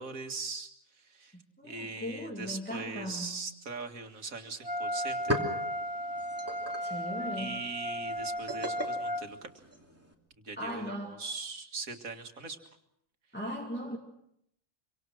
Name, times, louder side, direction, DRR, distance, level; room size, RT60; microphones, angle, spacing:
voice 1, 0.0-1.4 1.6-5.4 6.8-7.0 7.3-9.6 10.4-12.6, right 4 dB, 85° right, 2.3 m, -41 dB
voice 2, 1.3-3.4 6.8-7.6 10.6-11.2 13.3-14.0, equal, 10° left, 2.4 m, -38 dB
Wind instrument woodwind instrument, 4.6-9.3, equal, 30° right, 1.5 m, -35 dB
sound 1, 5.0-10.1, equal, 10° right, 2.7 m, -39 dB
25.5 x 24.5 x 6.3 m
omnidirectional pair, 1.4 m